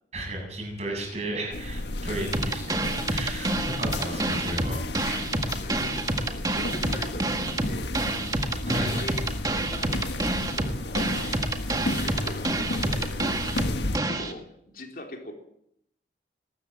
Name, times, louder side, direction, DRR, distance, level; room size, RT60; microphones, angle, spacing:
voice 1, 0.1-4.8 8.3-8.9, right 1 dB, 40° right, 1 dB, 7.7 m, -34 dB
sound 1, 1.5-14.0, left 1 dB, 80° left, 1.6 m, -33 dB
voice 2, 1.8-2.2 5.5-8.0 8.7-11.0 11.9-15.3, left 1 dB, 50° left, 3 dB, 3.9 m, -42 dB
sound 2, 2.3-14.3, right 2 dB, 20° right, 1.8 m, -28 dB
22.5 x 13.0 x 9.2 m, 0.72 s
head